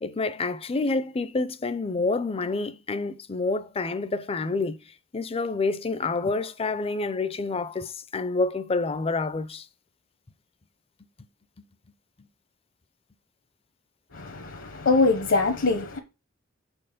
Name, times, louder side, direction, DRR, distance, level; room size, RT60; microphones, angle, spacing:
voice 1, 0.0-4.8 5.1-9.6, left 3 dB, 30° left, 0.5 m, -28 dB
voice 2, 14.1-16.0, left 3 dB, 65° left, 0.9 m, -23 dB
6.1 x 4.5 x 5.0 m
head